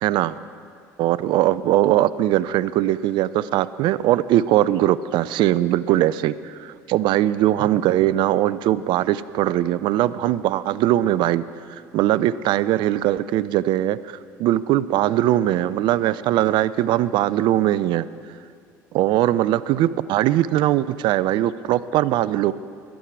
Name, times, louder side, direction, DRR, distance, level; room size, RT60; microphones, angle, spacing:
voice 1, 0.0-0.4 1.0-11.4 11.7-18.1 18.9-22.5, right 13 dB, 60° right, 17 dB, 0.4 m, -20 dB
16.0 x 11.5 x 4.8 m, 2.2 s
hypercardioid pair, 70°, 9 cm